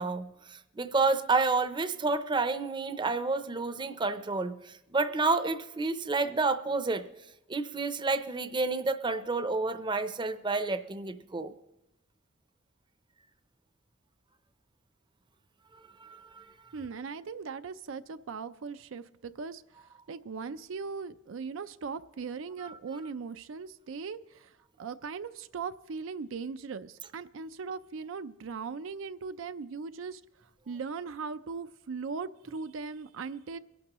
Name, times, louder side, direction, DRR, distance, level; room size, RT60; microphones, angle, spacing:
voice 1, 0.0-7.1 7.5-11.5 16.0-16.4 22.6-22.7, right 3 dB, 25° right, 11 dB, 0.6 m, -30 dB
voice 2, 16.7-19.6 20.1-30.2 30.7-33.6, right 5 dB, 75° right, 11 dB, 0.5 m, -39 dB
23.0 x 11.5 x 3.0 m, 0.92 s
head